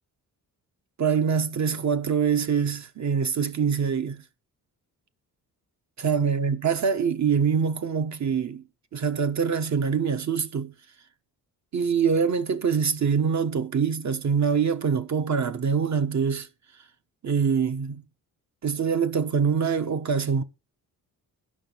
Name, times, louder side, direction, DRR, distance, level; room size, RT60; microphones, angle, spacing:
voice 1, 1.0-4.2 6.0-8.7 8.9-10.7 11.7-16.5 17.2-18.0 18.6-20.4, right 6 dB, 45° right, 1.1 m, -24 dB
10.0 x 6.2 x 5.7 m
cardioid pair, 100°, 38 cm